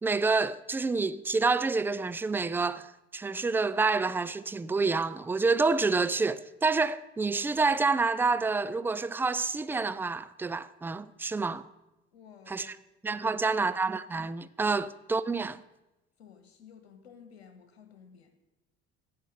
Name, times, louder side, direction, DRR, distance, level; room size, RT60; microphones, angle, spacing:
voice 1, 0.0-11.6 12.5-12.7 13.0-15.6, right 4 dB, 5° right, 0.4 m, -28 dB
voice 2, 12.1-12.8 13.2-13.6 16.2-18.3, left 7 dB, 75° left, 1.4 m, -54 dB
15.0 x 5.7 x 6.7 m
figure-of-eight pair, 60°, 32 cm